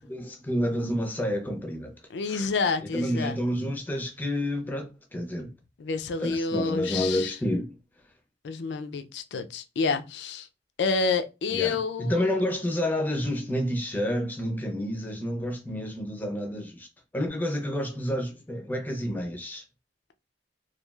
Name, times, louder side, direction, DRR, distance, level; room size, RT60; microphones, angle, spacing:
voice 1, 0.0-1.9 2.3-2.5 2.8-5.5 6.2-7.7 11.5-16.9 17.1-19.6, equal, 10° left, 0.5 m, -29 dB
voice 2, 2.1-3.4 5.8-7.4 8.4-10.5 10.8-12.4, left 4 dB, 80° left, 0.4 m, -29 dB
3.1 x 2.3 x 2.3 m
head